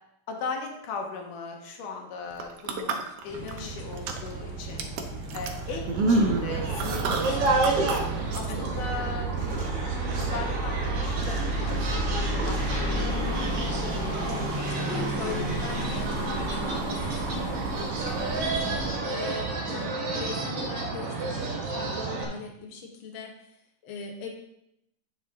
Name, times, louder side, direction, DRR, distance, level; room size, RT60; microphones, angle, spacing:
voice 1, 0.3-4.9 5.3-7.7 8.4-13.6, left 4 dB, 80° left, 2 dB, 2.5 m, -38 dB
sound 1, 2.3-3.6 3.9-4.4 4.8-8.0 8.3-8.4, right 3 dB, 90° right, 1.3 m, -27 dB
sound 2, 3.3-19.0, right 1 dB, 30° right, 1.8 m, -32 dB
sound 3, 5.9-22.3, right 3 dB, 55° right, 2.0 m, -31 dB
voice 2, 14.2-24.3, left 5 dB, 55° left, 0 dB, 1.6 m, -40 dB
9.1 x 5.6 x 3.7 m, 0.79 s
omnidirectional pair, 3.7 m